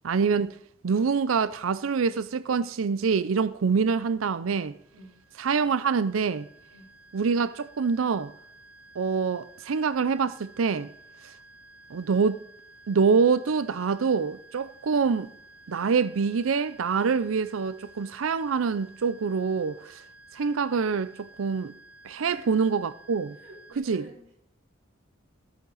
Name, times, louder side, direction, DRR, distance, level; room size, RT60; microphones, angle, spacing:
voice 1, 0.0-0.6 0.8-4.8 5.4-6.5 7.1-8.3 9.0-10.9 11.9-12.4 12.9-15.3 15.7-20.0 20.3-21.7 22.0-23.4 23.8-24.1, right 5 dB, 90° right, 0.5 m, -25 dB
sound 1, 4.7-23.8, right 2 dB, 5° right, 2.2 m, -53 dB
voice 2, 23.3-24.4, equal, 70° right, 4.2 m, -50 dB
14.5 x 9.0 x 3.9 m
head